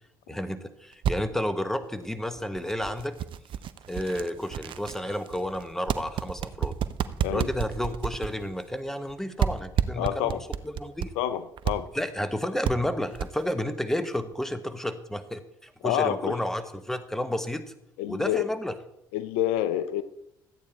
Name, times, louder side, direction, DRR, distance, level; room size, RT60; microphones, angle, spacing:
voice 1, 0.3-3.2 3.9-6.7 7.3-10.4 10.6-11.1 11.9-17.7 18.1-18.7, left 1 dB, 5° left, 11 dB, 1.2 m, -31 dB
sound 1, 0.9-1.1 1.8-2.0 2.6-9.1 9.4-11.1 11.6-11.7 12.2-12.3 12.6-12.7 13.1-13.5, right 9 dB, 55° right, 0.6 m, -30 dB
voice 2, 10.0-10.4 11.2-11.9 15.8-16.3 18.0-18.5 19.1-20.0, left 12 dB, 75° left, 13 dB, 0.6 m, -27 dB
13.5 x 8.6 x 4.4 m, 0.82 s
hypercardioid pair, 55°, 10 cm